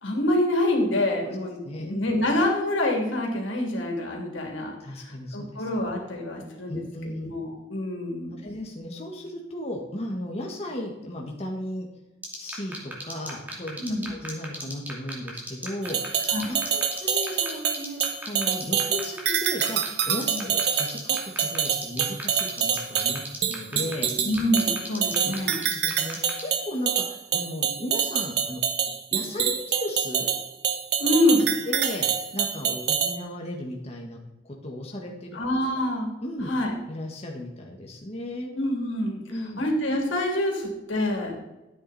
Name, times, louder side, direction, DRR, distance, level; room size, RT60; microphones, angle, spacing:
voice 1, 0.0-6.8 7.2-8.4 13.8-14.2 16.3-16.5 20.3-20.5 24.2-25.6 31.0-31.5 35.3-36.1 36.5-36.7 38.5-39.2 39.6-41.4, left 1 dB, 85° left, 0 dB, 3.0 m, -26 dB
voice 2, 4.8-5.7 6.7-7.3 8.4-11.9 12.4-13.8 14.1-16.2 16.5-23.2 23.5-24.1 24.9-25.3 25.7-28.6 29.1-30.3 31.7-34.2 34.4-35.4 36.2-36.5 36.9-38.5 39.3-39.6, left 1 dB, 30° left, 0 dB, 1.7 m, -35 dB
sound 1, 12.2-26.4, right 1 dB, 10° right, 2.5 m, -35 dB
sound 2, 15.8-33.2, right 8 dB, 55° right, 1.1 m, -26 dB
14.0 x 9.1 x 4.2 m, 1.0 s
head